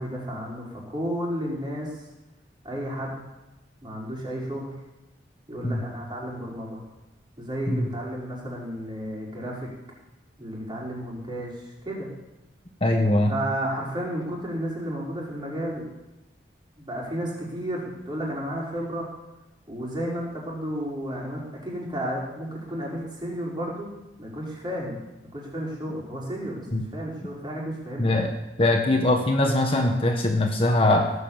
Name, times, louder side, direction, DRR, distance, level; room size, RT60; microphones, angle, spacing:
voice 1, 0.0-2.0 2.6-3.1 3.8-4.7 5.5-6.8 7.4-9.7 10.4-12.1 13.3-15.8 16.8-19.1 19.7-23.9 24.2-25.0 25.3-28.1, equal, 25° right, -4 dB, 4.9 m, -32 dB
voice 2, 12.8-13.3 26.7-26.8 28.0-28.3 28.6-31.1, left 1 dB, 30° left, 3 dB, 1.3 m, -22 dB
17.0 x 8.4 x 7.3 m, 0.99 s
head